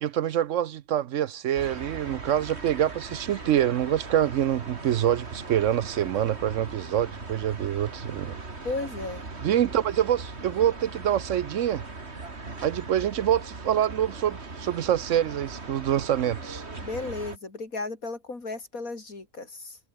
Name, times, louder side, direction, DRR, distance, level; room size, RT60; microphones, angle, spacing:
voice 1, 0.0-8.4 9.4-11.8 12.6-16.6, right 11 dB, 65° right, 0.9 m, -26 dB
sound 1, 1.6-17.4, right 3 dB, 50° right, 3.2 m, -39 dB
voice 2, 8.6-9.3 16.8-19.8, left 3 dB, 75° left, 4.4 m, -34 dB
omnidirectional pair, 1.5 m